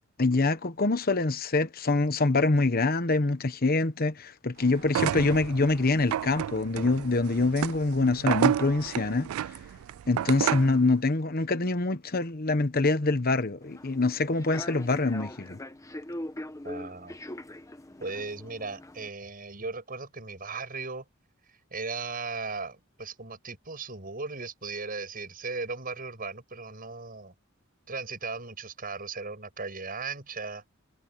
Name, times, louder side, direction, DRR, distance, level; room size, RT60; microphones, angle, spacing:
voice 1, 0.2-9.3 10.1-15.6, left 3 dB, 45° left, 1.1 m, -25 dB
sound 1, 4.8-10.8, right 10 dB, 85° right, 0.3 m, -31 dB
Human voice / Subway metro underground, 13.6-19.1, left 1 dB, 15° left, 0.9 m, -41 dB
voice 2, 16.6-17.2 18.0-21.1 21.7-27.3 27.9-30.6, right 4 dB, 45° right, 7.5 m, -37 dB
head